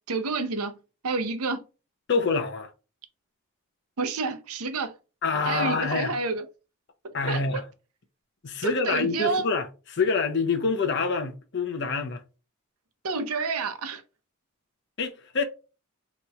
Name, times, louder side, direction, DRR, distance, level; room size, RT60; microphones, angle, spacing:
voice 1, 0.1-0.7 1.0-1.6 4.0-4.9 5.4-6.4 7.3-7.4 8.6-9.5 13.0-14.0, right 4 dB, 85° right, 0.7 m, -29 dB
voice 2, 2.1-2.7 5.2-6.2 7.1-7.6 8.4-12.2 15.0-15.4, left 4 dB, 50° left, 0.6 m, -26 dB
4.1 x 3.0 x 2.3 m
head